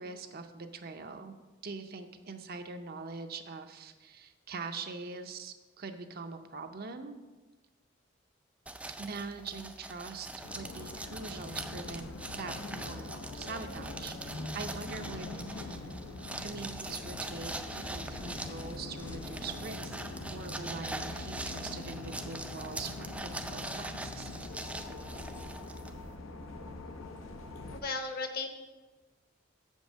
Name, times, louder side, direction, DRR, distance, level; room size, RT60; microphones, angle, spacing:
voice 1, 0.0-1.3 1.6-7.1 9.0-10.3 10.5-14.2 14.5-15.9 16.4-20.0 20.3-24.3, right 4 dB, 50° right, 7 dB, 0.6 m, -43 dB
sound 1, 8.7-26.2, right 2 dB, 5° right, 0.4 m, -43 dB
sound 2, 10.4-27.8, left 2 dB, 85° left, 0.8 m, -43 dB
voice 2, 27.8-28.5, left 3 dB, 50° left, 6 dB, 0.9 m, -34 dB
7.2 x 5.4 x 6.2 m, 1.2 s
head